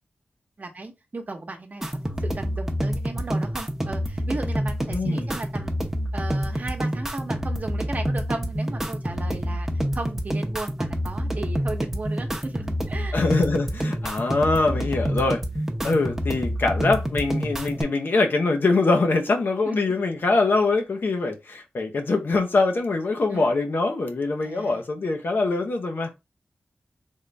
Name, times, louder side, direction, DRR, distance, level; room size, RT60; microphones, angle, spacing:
voice 1, 0.6-1.9 2.2-5.7 6.1-9.7 9.9-13.2 19.7-19.9 23.3-23.5 24.4-24.8, right 3 dB, 50° right, 0.9 m, -35 dB
sound 1, 1.8-17.8, equal, 10° right, 0.7 m, -27 dB
voice 2, 4.9-5.3 13.1-15.4 15.8-26.1, left 3 dB, 70° left, 0.8 m, -23 dB
3.6 x 2.5 x 3.3 m
wide cardioid pair, 90°, 4 cm